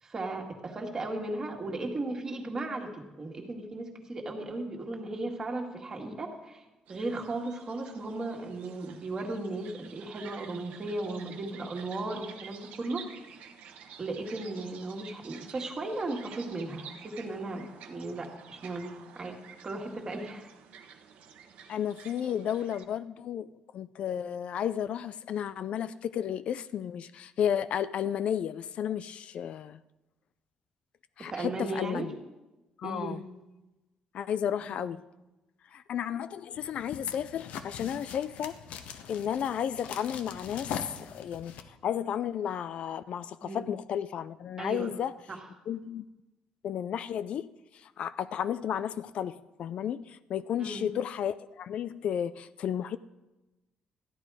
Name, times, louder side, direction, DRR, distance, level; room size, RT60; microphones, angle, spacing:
voice 1, 0.0-6.6 6.9-13.1 14.0-19.4 19.6-20.5 31.2-32.1 32.8-33.3 34.7-34.8 43.4-43.7 44.6-44.9 45.3-45.4 50.6-50.9, right 2 dB, 30° right, 2 dB, 1.9 m, -36 dB
sound 1, 6.9-22.8, right 7 dB, 85° right, 1.1 m, -50 dB
voice 2, 21.7-23.5 23.7-29.8 31.2-32.2 32.8-33.2 34.1-35.0 35.7-38.6 39.1-45.1 45.7-46.0 46.6-47.5 47.7-53.0, left 9 dB, 55° left, 14 dB, 0.4 m, -33 dB
sound 2, 36.5-41.6, left 8 dB, 90° left, 0.9 m, -42 dB
14.0 x 10.5 x 4.8 m, 1.1 s
cardioid pair, 150°, 2 cm